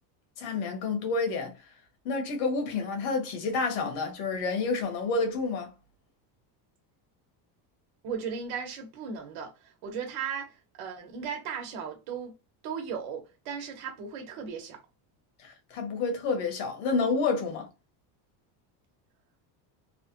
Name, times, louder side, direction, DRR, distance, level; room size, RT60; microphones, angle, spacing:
voice 1, 0.4-1.5 2.0-5.7 15.4-17.7, left 4 dB, 75° left, 1.3 m, -29 dB
voice 2, 8.0-12.3 12.6-14.8, right 6 dB, 70° right, 1.1 m, -36 dB
3.2 x 2.2 x 2.8 m
cardioid pair, 130°, 49 cm